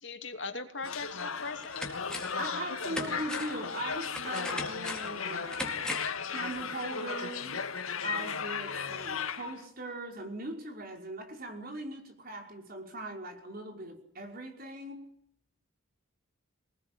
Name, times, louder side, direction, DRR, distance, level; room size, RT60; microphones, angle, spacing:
voice 1, 0.0-1.9 8.2-8.3, left 3 dB, 60° left, 2.9 m, -40 dB
sound 1, 0.8-9.6, left 6 dB, 85° left, 2.1 m, -36 dB
sound 2, 0.8-0.9 1.4-2.5 2.8-6.2 6.5-6.6, left 2 dB, 5° left, 4.2 m, -40 dB
voice 2, 2.4-5.8 6.2-7.6 8.0-15.2, right 2 dB, 45° right, 5.4 m, -40 dB
26.0 x 20.0 x 9.0 m
head